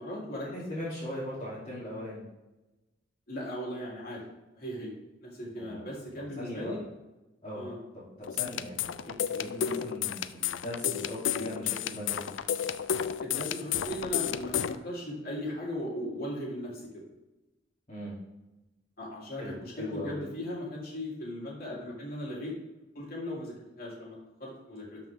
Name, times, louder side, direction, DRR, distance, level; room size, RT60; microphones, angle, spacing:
voice 1, 0.0-0.5 3.3-4.2 4.6-4.9 5.2-6.8 7.5-7.8 13.2-16.8 19.0-22.5 22.9-25.0, equal, 55° left, -4 dB, 3.3 m, -38 dB
voice 2, 0.5-2.2 5.6-5.8 6.4-6.8 7.4-7.6 8.2-12.3 17.9-18.2 19.4-20.2, left 1 dB, 35° left, -10 dB, 2.9 m, -39 dB
sound 1, 8.2-14.8, left 9 dB, 90° left, 0.4 m, -31 dB
12.5 x 5.7 x 3.5 m, 1.0 s
head